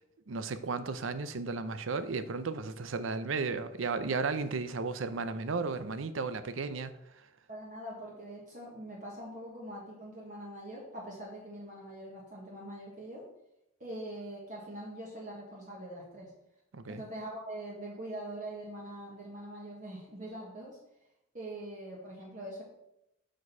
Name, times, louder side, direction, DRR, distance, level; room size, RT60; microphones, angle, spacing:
voice 1, 0.3-7.0 16.7-17.0, right 4 dB, 85° right, 0.6 m, -34 dB
voice 2, 7.5-13.3 13.8-16.3 16.9-20.8 21.3-22.6, right 1 dB, 40° right, 1.5 m, -43 dB
6.2 x 5.1 x 5.4 m
head